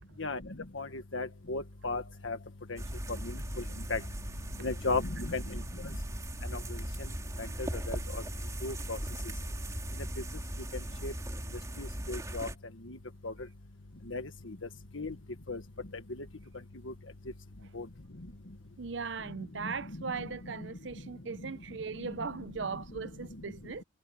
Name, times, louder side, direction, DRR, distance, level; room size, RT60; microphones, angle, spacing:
voice 1, 1.1-2.4 3.9-4.0 4.6-5.4 7.6-8.0 8.6-9.0 11.0-11.1 11.8-12.5 13.2-13.3 14.1-14.2 14.9-15.1 15.5-15.6 17.8-17.9, left 3 dB, 85° left, 1.6 m, -34 dB
sound 1, 2.8-12.5, right 1 dB, 15° right, 3.5 m, -38 dB
voice 2, 18.8-23.8, right 5 dB, 70° right, 0.8 m, -38 dB
head